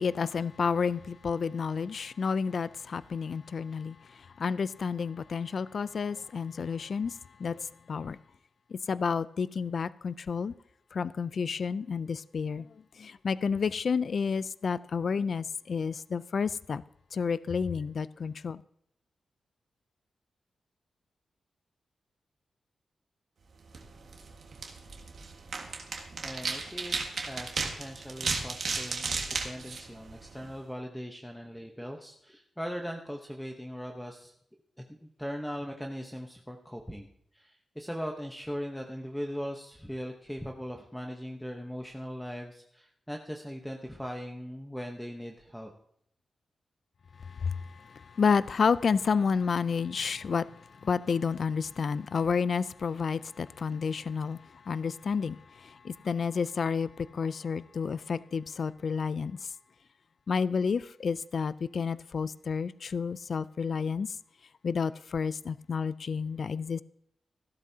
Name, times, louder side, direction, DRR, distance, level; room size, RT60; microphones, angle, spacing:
voice 1, 0.0-8.2 8.7-10.5 10.9-16.8 17.1-18.6 47.2-59.5 60.3-64.2 64.6-66.8, left 5 dB, 60° left, 0.4 m, -30 dB
sound 1, 23.6-30.6, right 4 dB, 65° right, 1.7 m, -35 dB
voice 2, 26.2-27.0 27.2-34.3 34.8-37.1 37.3-45.7, equal, 5° left, 0.9 m, -39 dB
14.5 x 12.5 x 2.8 m
wide cardioid pair, 105°, 0 cm